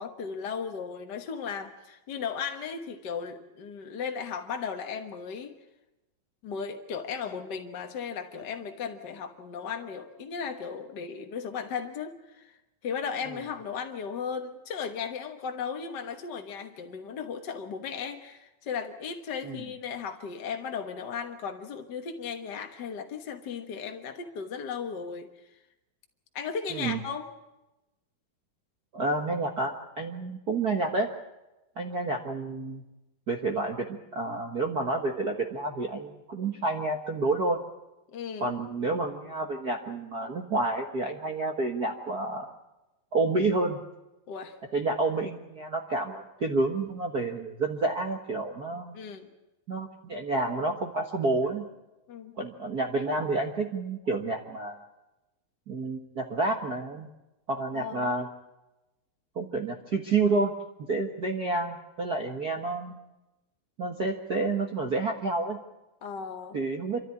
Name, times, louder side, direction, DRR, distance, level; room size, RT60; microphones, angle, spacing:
voice 1, 0.0-5.5 6.4-12.6 12.8-25.5 26.3-27.3 38.1-38.5 44.3-44.6 48.9-49.3 52.1-52.3 57.7-58.1 66.0-66.6, left 6 dB, 60° left, 5 dB, 1.1 m, -36 dB
voice 2, 26.7-27.0 28.9-31.1 31.8-32.8 33.3-37.6 38.4-42.5 43.1-43.8 44.7-48.9 49.7-51.6 52.4-54.8 55.7-57.1 57.5-58.3 59.3-60.5 60.9-63.0 63.8-65.6 66.5-67.0, right 3 dB, 55° right, 2 dB, 1.0 m, -29 dB
27.0 x 13.5 x 9.7 m, 0.99 s
omnidirectional pair, 4.0 m